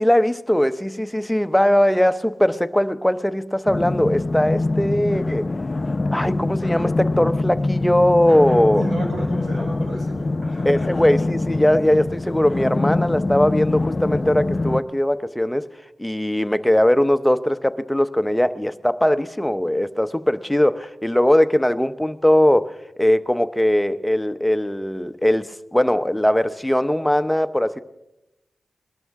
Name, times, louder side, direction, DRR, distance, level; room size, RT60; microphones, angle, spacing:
voice 1, 0.0-5.5 6.1-8.8 10.6-15.7 16.0-22.7 23.0-27.8, left 1 dB, 5° left, 11 dB, 0.7 m, -20 dB
sound 1, 3.7-14.8, left 2 dB, 40° left, 0.5 m, -24 dB
voice 2, 8.8-10.7 10.9-11.0, right 2 dB, 85° right, -1 dB, 4.5 m, -31 dB
21.0 x 12.5 x 3.6 m, 0.94 s
cardioid pair, 55°, 0 cm